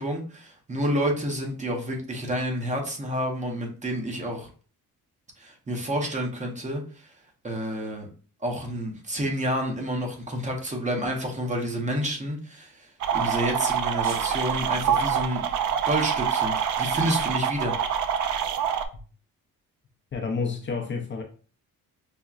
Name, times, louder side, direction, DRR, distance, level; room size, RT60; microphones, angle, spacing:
voice 1, 0.0-4.5 5.4-7.1 7.4-8.1 8.4-15.4 15.7-17.8, equal, 20° right, 0.7 m, -29 dB
sound 1, 13.0-18.9, right 8 dB, 60° right, 0.5 m, -26 dB
sound 2, 14.0-15.5, right 3 dB, 85° right, 1.7 m, -46 dB
voice 2, 20.1-21.2, left 5 dB, 35° left, 0.6 m, -29 dB
5.7 x 2.1 x 2.4 m
cardioid pair, 145°, 33 cm